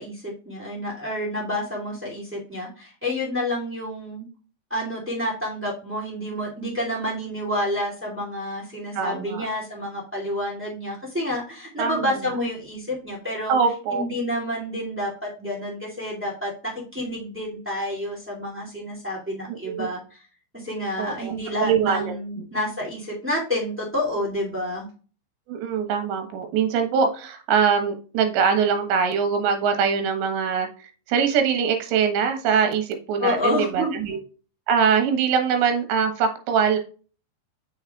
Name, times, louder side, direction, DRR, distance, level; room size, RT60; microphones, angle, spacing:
voice 1, 0.0-4.2 4.7-13.5 13.9-20.2 20.5-24.8 33.2-34.0, left 1 dB, 10° right, -4 dB, 0.5 m, -29 dB
voice 2, 8.9-9.4 11.8-12.0 13.5-14.0 19.5-19.9 21.0-21.3 21.6-22.1 25.5-30.7 31.1-34.2 34.7-36.8, right 6 dB, 75° right, 6 dB, 3.4 m, -22 dB
6.7 x 6.4 x 2.3 m, 0.37 s
omnidirectional pair, 5.3 m